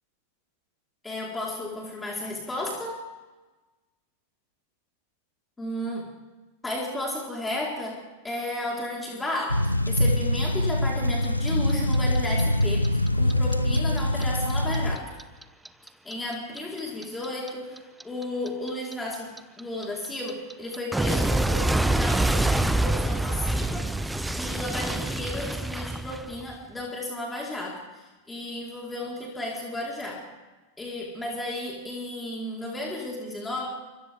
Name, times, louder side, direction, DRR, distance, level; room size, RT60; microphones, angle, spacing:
voice 1, 1.0-3.0 5.6-6.1 6.6-8.0 8.2-15.1 16.0-23.9 24.3-30.2 30.8-33.7, left 1 dB, 10° left, -3 dB, 4.3 m, -33 dB
sound 1, 9.5-15.0, left 1 dB, 85° left, 0.8 m, -24 dB
Clock, 11.2-14.2 14.5-17.5 17.8-26.6, right 1 dB, 5° right, 0.9 m, -26 dB
29.5 x 26.0 x 3.6 m, 1.2 s
figure-of-eight pair, 90°, 0 cm